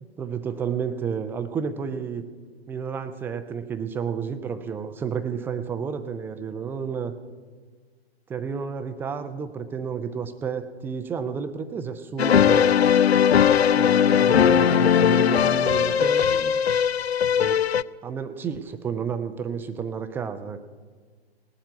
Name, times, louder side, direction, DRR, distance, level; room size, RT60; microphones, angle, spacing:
voice 1, 0.2-2.2 2.7-7.1 8.3-12.8 13.8-16.6 17.4-17.6 18.0-20.6, right 6 dB, 5° right, 9 dB, 0.4 m, -31 dB
sound 1, 12.2-17.8, left 8 dB, 80° left, 0.5 m, -19 dB
18.0 x 7.6 x 9.4 m, 1.5 s
figure-of-eight pair, 110°, 32 cm